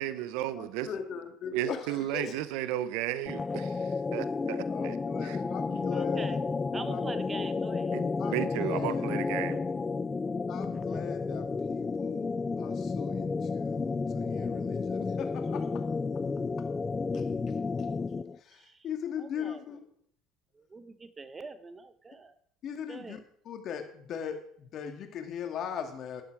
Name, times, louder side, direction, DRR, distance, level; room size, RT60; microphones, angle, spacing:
voice 1, 0.0-0.9 1.5-5.0 5.3-5.4 7.9-8.0 8.3-9.6, right 13 dB, 70° right, 0.8 m, -34 dB
voice 2, 0.6-2.4 4.7-6.4 6.9-7.0 8.2-9.3 10.5-15.9 16.1-16.2 16.6-16.7 17.1-17.3 17.8-17.9 18.4-19.8 22.6-23.2 23.4-26.2, left 7 dB, 50° left, 2.2 m, -39 dB
sound 1, 3.3-18.4, left 4 dB, 25° left, 0.5 m, -32 dB
voice 3, 5.9-6.4 6.7-8.4 18.5-18.8 19.2-19.6 20.5-22.3 22.9-23.2, right 4 dB, 25° right, 1.1 m, -43 dB
12.0 x 10.5 x 4.9 m
hypercardioid pair, 75°, 0 cm